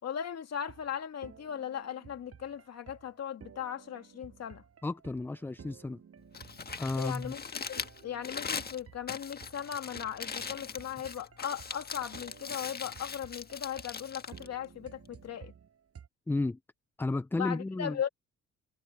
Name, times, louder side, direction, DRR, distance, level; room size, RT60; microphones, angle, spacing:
voice 1, 0.0-4.6 6.9-15.5 17.3-18.1, left 9 dB, 55° left, 2.6 m, -38 dB
sound 1, 0.6-16.1, right 7 dB, 50° right, 7.0 m, -55 dB
voice 2, 4.8-6.0 6.8-7.3 16.3-16.6 17.0-18.0, left 2 dB, 10° left, 0.3 m, -32 dB
Crumpling crinkling, 6.2-15.3, left 5 dB, 30° left, 1.6 m, -41 dB
cardioid pair, 90°, 30 cm